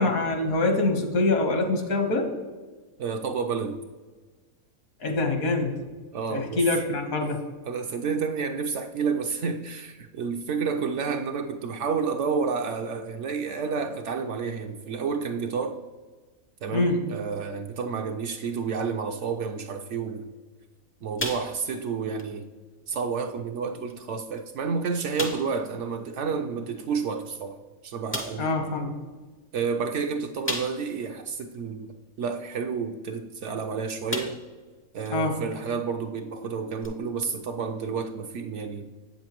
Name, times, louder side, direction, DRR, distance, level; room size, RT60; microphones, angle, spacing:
voice 1, 0.0-2.3 5.0-5.7 6.3-7.4 16.7-17.0 28.4-28.9 35.1-35.3, left 2 dB, 75° left, 4 dB, 1.6 m, -24 dB
voice 2, 3.0-3.8 6.1-6.6 7.7-15.8 16.6-20.3 21.0-22.5 22.9-27.6 27.8-28.5 29.5-31.9 32.2-34.4 34.9-38.9, right 5 dB, 65° right, 5 dB, 0.8 m, -30 dB
sound 1, 21.2-21.9 22.2-22.4 22.9-23.0 23.9-24.0 24.4-24.5 25.2-25.6 27.2-27.3 28.1-28.5 30.4-31.0 31.5-31.6 33.5-33.6 34.1-34.6 35.0-35.1 36.8-36.9, left 1 dB, 20° left, 0.3 m, -33 dB
8.1 x 7.0 x 2.9 m, 1.4 s
omnidirectional pair, 1.5 m